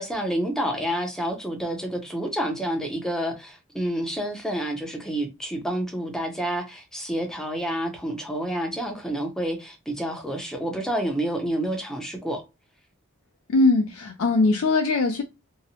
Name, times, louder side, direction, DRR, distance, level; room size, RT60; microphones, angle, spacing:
voice 1, 0.0-12.4, right 1 dB, 5° left, 0.5 m, -29 dB
voice 2, 13.5-15.2, left 3 dB, 85° left, 0.4 m, -21 dB
2.6 x 2.0 x 2.7 m
head